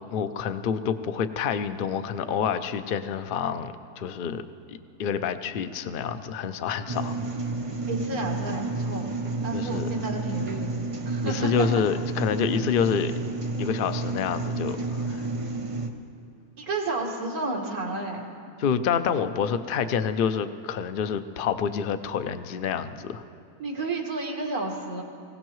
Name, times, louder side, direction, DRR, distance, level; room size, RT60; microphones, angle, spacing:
voice 1, 0.1-4.4 4.7-7.2 9.5-9.9 11.2-13.1 13.6-15.2 18.6-23.2, left 7 dB, 70° left, 10 dB, 0.5 m, -28 dB
sound 1, 6.9-15.9, right 3 dB, 30° right, 0.6 m, -31 dB
voice 2, 7.9-9.1 9.4-10.8 11.1-11.7 16.6-18.2 23.6-25.0, right 2 dB, 70° right, 0 dB, 2.4 m, -31 dB
24.5 x 16.5 x 3.1 m, 2.4 s
omnidirectional pair, 1.6 m